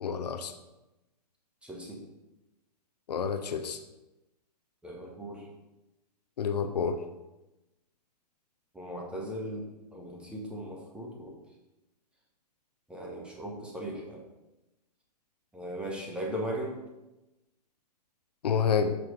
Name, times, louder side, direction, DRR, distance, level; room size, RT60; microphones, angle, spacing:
voice 1, 0.0-0.5 3.1-3.8 6.4-7.0 18.4-19.0, left 6 dB, 70° left, 8 dB, 0.7 m, -28 dB
voice 2, 1.6-2.0 4.8-5.5 8.7-9.7 9.9-11.4 12.9-14.2 15.5-16.8, equal, 5° right, -2 dB, 1.4 m, -38 dB
6.2 x 4.5 x 5.2 m, 1.0 s
hypercardioid pair, 130°, 21 cm